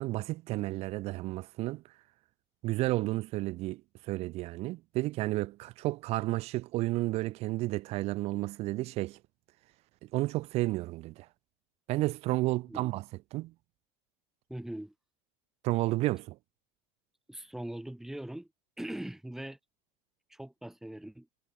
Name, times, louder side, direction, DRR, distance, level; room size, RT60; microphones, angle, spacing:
voice 1, 0.0-1.8 2.6-9.2 10.0-11.3 11.9-13.0 13.3-13.5 15.6-16.4, right 18 dB, 35° right, 2.2 m, -32 dB
voice 2, 14.5-14.9 17.3-18.5 18.8-19.6 20.3-21.3, right 1 dB, ahead, 6.0 m, -41 dB
cardioid pair, 180°, 17 cm